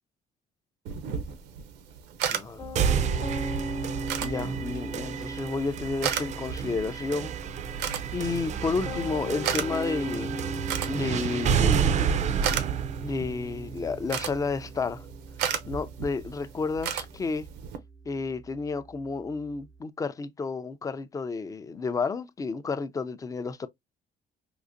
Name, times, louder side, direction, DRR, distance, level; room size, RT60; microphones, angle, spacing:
sound 1, 0.8-17.8, right 8 dB, 90° right, 0.6 m, -36 dB
voice 1, 2.3-2.8 4.2-7.3 8.1-10.3 10.9-12.2 13.0-15.1 15.7-17.5 18.1-23.7, left 4 dB, 20° left, 0.4 m, -31 dB
Piano, 2.6-19.7, equal, 40° left, 0.9 m, -39 dB
sound 2, 2.7-14.7, right 8 dB, 45° right, 0.4 m, -30 dB
3.8 x 2.5 x 2.5 m
cardioid pair, 110°, 17 cm